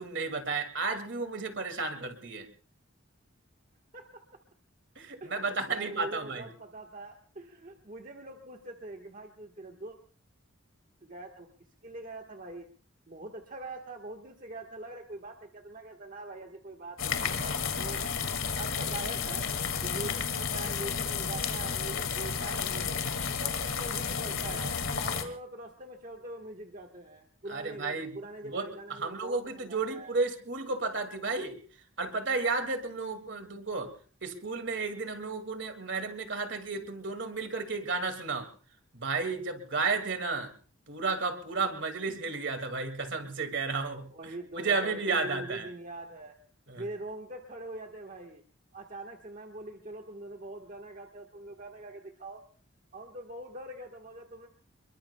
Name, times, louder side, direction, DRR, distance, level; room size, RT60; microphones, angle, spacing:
voice 1, 0.0-2.5 5.0-6.5 27.5-28.1 28.5-31.6 32.0-33.9 34.2-38.5 38.9-40.5 40.9-44.1 44.6-45.7 46.7-46.8, right 4 dB, 60° right, 8 dB, 2.1 m, -32 dB
voice 2, 3.9-4.4 5.2-10.0 11.0-11.5 11.8-12.7 13.1-18.0 18.5-19.5 19.8-23.0 23.4-24.8 25.0-30.2 44.1-46.4 46.8-48.4 48.7-52.4 52.9-54.5, right 2 dB, 40° right, 3 dB, 1.3 m, -43 dB
sound 1, 17.0-25.2, left 6 dB, 80° left, 2.0 m, -32 dB
27.5 x 22.5 x 2.2 m, 0.42 s
head